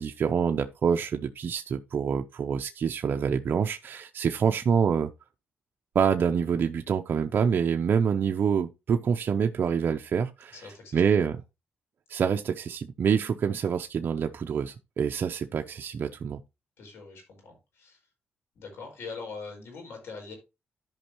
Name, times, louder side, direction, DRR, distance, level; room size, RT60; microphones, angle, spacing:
voice 1, 0.0-5.1 5.9-10.6 10.9-11.4 12.1-16.4, right 7 dB, 55° right, 0.6 m, -26 dB
voice 2, 10.5-11.0 16.8-18.0 18.5-20.3, left 4 dB, 85° left, 4.9 m, -42 dB
13.5 x 5.3 x 2.9 m
cardioid pair, 110°, 4 cm